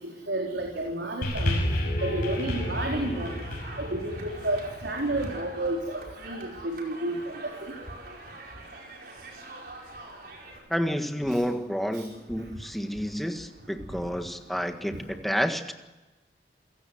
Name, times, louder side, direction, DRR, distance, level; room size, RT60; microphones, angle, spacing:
voice 1, 0.0-1.6 2.0-3.4 3.8-7.7 11.3-11.4 11.9-12.0, right 1 dB, 80° right, 0 dB, 4.0 m, -31 dB
sound 1, 1.2-5.8 6.6-6.7, left 1 dB, 50° left, 6.6 m, -31 dB
sound 2, 2.0-10.6, right 2 dB, 55° right, 4.9 m, -45 dB
voice 2, 10.7-15.7, equal, ahead, 6 dB, 1.6 m, -30 dB
28.0 x 16.5 x 7.9 m, 1.1 s
head